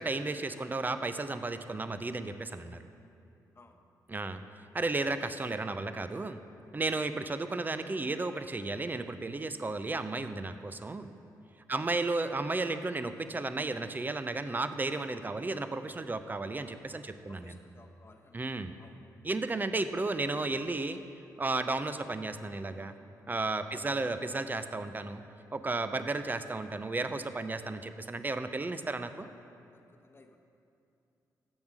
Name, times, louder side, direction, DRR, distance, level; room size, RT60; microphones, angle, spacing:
voice 1, 0.0-2.8 4.1-4.4 4.7-6.4 6.7-11.1 11.7-17.6 18.3-18.7 19.2-21.0 21.4-22.9 23.3-25.2 25.5-29.3, right 3 dB, 25° right, 10 dB, 0.5 m, -33 dB
voice 2, 17.3-19.0 23.7-23.9 29.9-30.4, left 3 dB, 30° left, 4 dB, 1.0 m, -56 dB
8.1 x 7.1 x 6.1 m, 2.7 s
cardioid pair, 60°, 7 cm